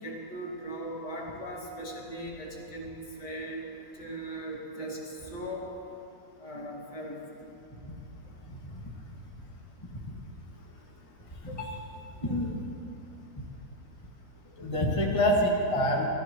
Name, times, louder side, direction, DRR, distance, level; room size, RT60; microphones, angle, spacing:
voice 1, 0.0-3.6 4.0-5.7 6.4-7.2, right 1 dB, 65° left, -3 dB, 2.8 m, -38 dB
voice 2, 11.4-11.8 12.2-12.5 14.6-16.1, left 1 dB, 20° left, -3 dB, 1.8 m, -26 dB
27.0 x 14.0 x 3.1 m, 2.7 s
omnidirectional pair, 1.9 m